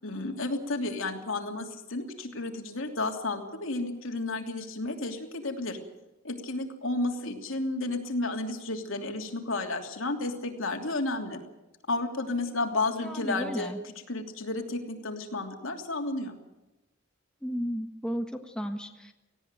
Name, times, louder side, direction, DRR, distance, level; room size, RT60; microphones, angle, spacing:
voice 1, 0.0-5.8 6.2-11.4 11.9-13.7 14.1-16.4, left 2 dB, 75° left, 3 dB, 3.0 m, -32 dB
voice 2, 13.0-13.8 17.4-19.1, equal, 5° left, 4 dB, 1.5 m, -34 dB
18.5 x 17.0 x 9.1 m, 1.0 s
head